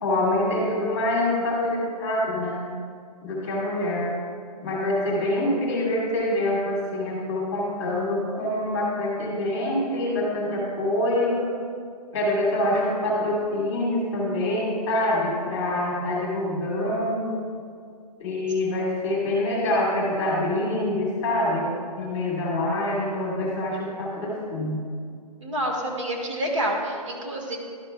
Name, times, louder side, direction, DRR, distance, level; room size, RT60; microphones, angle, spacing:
voice 1, 0.0-2.6 3.2-4.1 4.6-11.4 12.1-17.3 18.2-21.7 22.0-24.8, left 1 dB, 20° left, -4 dB, 2.0 m, -25 dB
voice 2, 25.4-27.6, right 1 dB, 50° right, 0 dB, 1.5 m, -28 dB
11.5 x 6.7 x 2.2 m, 2.1 s
hypercardioid pair, 175°, 21 cm